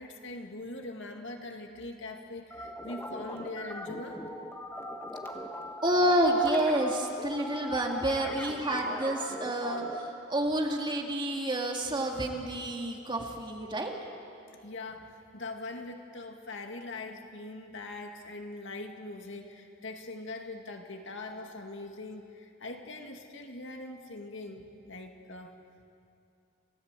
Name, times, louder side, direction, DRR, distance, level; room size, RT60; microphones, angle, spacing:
voice 1, 0.0-4.2 14.6-25.5, left 2 dB, 65° left, 3 dB, 2.2 m, -42 dB
sound 1, 2.5-10.1, left 1 dB, 10° left, 1.4 m, -40 dB
voice 2, 5.8-13.9, right 1 dB, 25° right, 1 dB, 2.2 m, -29 dB
28.5 x 15.0 x 8.3 m, 2.6 s
head